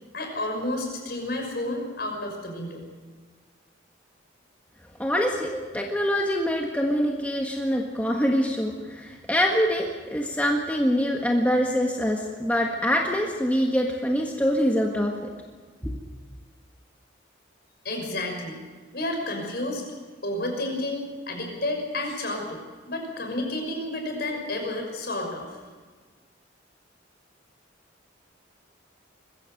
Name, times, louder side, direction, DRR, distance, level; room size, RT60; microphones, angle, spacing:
voice 1, 0.1-2.8 17.8-18.6 18.9-19.8 20.2-25.6, left 1 dB, 55° left, 2 dB, 6.0 m, -31 dB
voice 2, 5.0-15.1, equal, 10° left, 0 dB, 1.6 m, -24 dB
22.5 x 15.5 x 7.9 m, 1.4 s
head